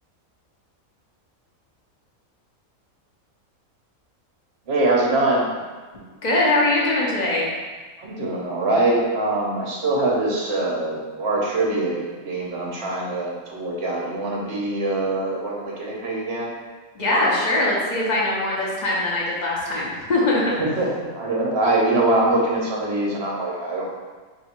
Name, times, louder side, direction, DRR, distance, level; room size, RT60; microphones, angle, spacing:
voice 1, 4.7-5.4 8.0-16.5 20.6-24.0, right 2 dB, 55° right, -3 dB, 1.0 m, -23 dB
voice 2, 6.2-7.5 16.9-20.5, left 2 dB, 40° left, -5 dB, 0.8 m, -21 dB
3.4 x 2.8 x 4.3 m, 1.4 s
omnidirectional pair, 1.5 m